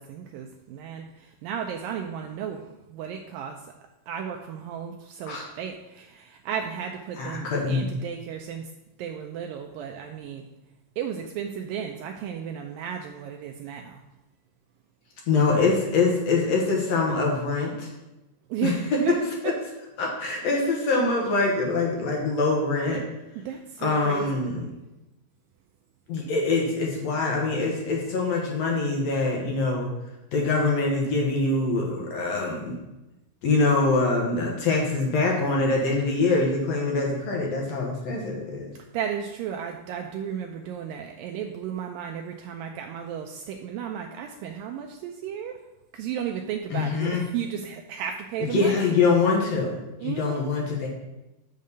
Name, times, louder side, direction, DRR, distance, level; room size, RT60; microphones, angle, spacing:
voice 1, 0.0-2.6 2.9-3.6 4.1-8.7 9.0-10.5 11.0-14.0 18.5-19.1 19.4-19.5 23.5-24.8 38.9-45.6 45.9-48.9 50.0-50.5, right 8 dB, 80° right, 4 dB, 2.1 m, -34 dB
voice 2, 7.2-7.8 15.3-17.9 18.6-18.7 19.1-19.3 20.0-23.0 23.8-24.7 26.1-29.9 30.3-32.8 33.4-38.7 46.7-47.2 48.4-50.9, left 3 dB, 65° left, -1 dB, 1.8 m, -24 dB
6.4 x 5.2 x 6.8 m, 0.98 s
omnidirectional pair, 4.4 m